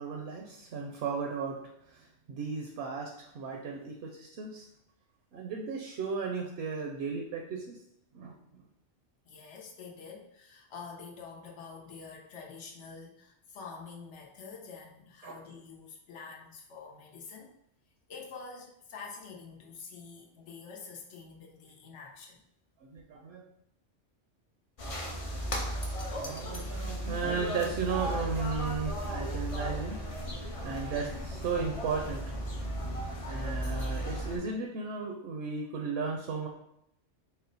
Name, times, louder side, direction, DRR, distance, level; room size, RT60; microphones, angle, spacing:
voice 1, 0.0-4.7 5.3-7.8 8.1-8.6 15.2-15.4 22.8-23.5 26.2-32.4 33.3-36.5, right 5 dB, 65° right, 1 dB, 0.7 m, -35 dB
voice 2, 9.3-17.5 18.1-22.4, left 5 dB, 75° left, -1 dB, 1.0 m, -47 dB
sound 1, 24.8-34.4, equal, 40° left, 0.5 m, -35 dB
4.3 x 2.0 x 3.9 m, 0.78 s
omnidirectional pair, 1.2 m